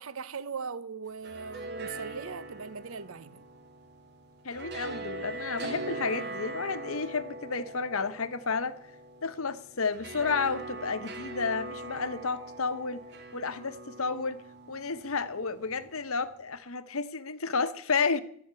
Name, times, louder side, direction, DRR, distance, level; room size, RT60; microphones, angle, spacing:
voice 1, 0.0-3.4, right 5 dB, 75° right, 0.9 m, -39 dB
sound 1, 1.1-16.3, right 2 dB, 50° right, 2.3 m, -42 dB
voice 2, 4.4-8.8 9.2-13.0 13.3-14.4 14.7-18.2, left 4 dB, 80° left, 1.1 m, -31 dB
12.5 x 9.4 x 8.7 m
head